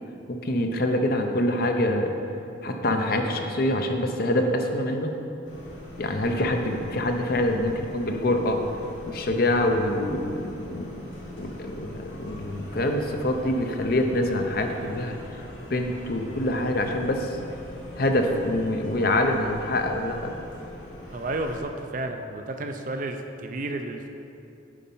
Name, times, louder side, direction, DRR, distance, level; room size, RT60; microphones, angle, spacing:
voice 1, 0.3-2.1 2.6-5.1 6.0-8.6 9.1-10.9 11.4-17.4 18.0-20.3, left 1 dB, 50° left, 4 dB, 0.6 m, -25 dB
sound 1, 5.4-21.6, left 1 dB, 70° left, 1.9 m, -42 dB
voice 2, 21.1-24.1, right 2 dB, 40° right, 5 dB, 0.5 m, -32 dB
8.4 x 5.2 x 5.4 m, 2.7 s
head